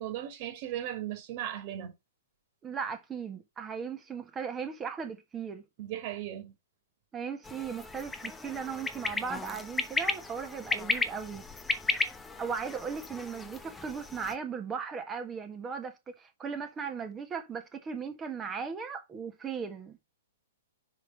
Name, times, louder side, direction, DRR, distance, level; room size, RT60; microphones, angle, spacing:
voice 1, 0.0-1.9 5.8-6.5, right 11 dB, 45° right, 2.6 m, -37 dB
voice 2, 2.6-5.6 7.1-11.4 11.9-12.1 12.4-20.0, right 6 dB, 15° right, 1.5 m, -37 dB
sound 1, 7.4-14.4, left 3 dB, 10° left, 0.9 m, -34 dB
5.1 x 4.8 x 6.3 m
hypercardioid pair, 135°, 0 cm